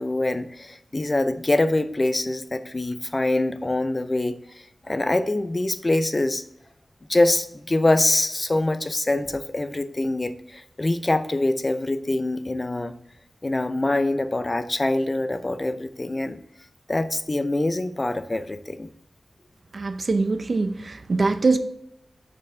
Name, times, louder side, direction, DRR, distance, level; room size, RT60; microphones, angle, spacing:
voice 1, 0.0-4.4 4.9-6.4 7.1-12.9 13.4-16.4 16.9-18.9, left 2 dB, 35° left, 11 dB, 0.6 m, -24 dB
voice 2, 19.7-21.6, right 3 dB, 60° right, 9 dB, 0.6 m, -23 dB
6.7 x 5.3 x 3.8 m, 0.76 s
wide cardioid pair, 70°, 0 cm